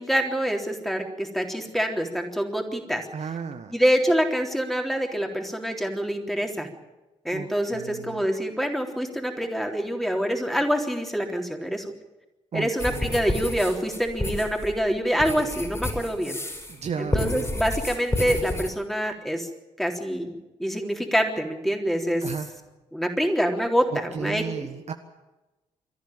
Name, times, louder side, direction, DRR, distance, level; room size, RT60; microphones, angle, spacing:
voice 1, 0.0-3.0 3.7-6.7 7.2-11.9 12.5-16.4 17.0-19.5 19.8-20.3 20.6-22.2 22.9-24.4, equal, ahead, 3 dB, 3.7 m, -26 dB
voice 2, 3.1-3.8 7.3-8.2 12.5-13.1 16.7-17.5 22.2-22.5 23.9-24.9, right 6 dB, 45° right, 6 dB, 1.4 m, -34 dB
sound 1, 12.8-16.8 17.1-18.7, left 2 dB, 20° left, 5.5 m, -30 dB
23.5 x 14.5 x 9.0 m, 1.1 s
figure-of-eight pair, 40°, 16 cm